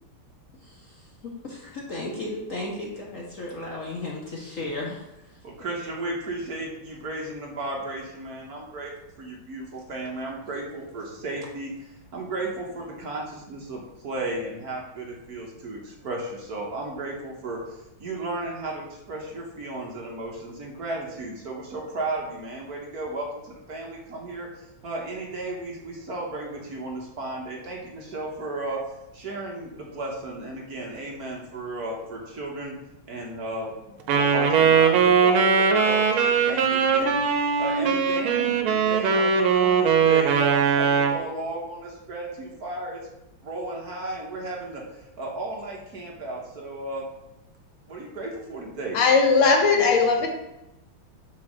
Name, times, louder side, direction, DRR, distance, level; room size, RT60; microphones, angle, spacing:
voice 1, 0.6-5.4, left 2 dB, 55° left, -2 dB, 1.0 m, -35 dB
voice 2, 5.4-8.9 9.2-28.8 29.1-32.8 33.0-43.0 43.4-47.0 47.9-49.0, right 2 dB, 55° right, -1 dB, 1.4 m, -34 dB
Wind instrument woodwind instrument, 34.1-41.2, right 6 dB, 80° right, 1.6 m, -20 dB
voice 3, 48.9-50.3, left 4 dB, 80° left, 2 dB, 2.0 m, -18 dB
6.1 x 4.0 x 6.2 m, 0.92 s
omnidirectional pair, 2.3 m